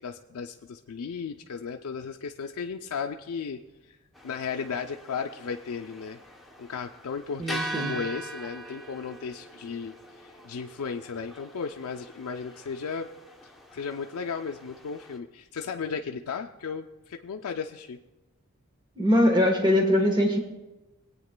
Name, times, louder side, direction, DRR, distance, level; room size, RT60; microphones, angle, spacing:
voice 1, 0.0-4.0 4.2-6.2 6.6-13.1 13.4-18.0, left 5 dB, 85° left, 4 dB, 0.4 m, -35 dB
sound 1, 4.1-15.2, right 1 dB, ahead, 0.7 m, -42 dB
voice 2, 7.4-7.9 19.0-20.4, left 1 dB, 20° right, 3 dB, 1.1 m, -22 dB
25.0 x 8.6 x 2.2 m, 1.1 s
head